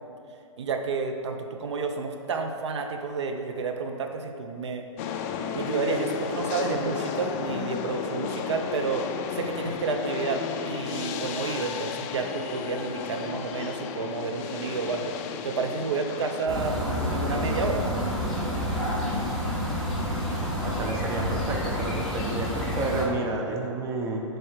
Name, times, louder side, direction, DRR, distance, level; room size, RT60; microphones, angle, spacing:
voice 1, 0.6-4.8 5.5-15.2 15.4-16.8 17.1-17.8, right 4 dB, 60° right, 5 dB, 0.6 m, -30 dB
sound 1, 5.0-16.5, left 6 dB, 30° left, 0.4 m, -33 dB
sound 2, 16.5-23.0, equal, ahead, 1.4 m, -28 dB
voice 2, 20.6-24.2, right 2 dB, 15° right, 1 dB, 0.6 m, -31 dB
6.3 x 4.6 x 4.6 m, 2.5 s
figure-of-eight pair, 125°, 17 cm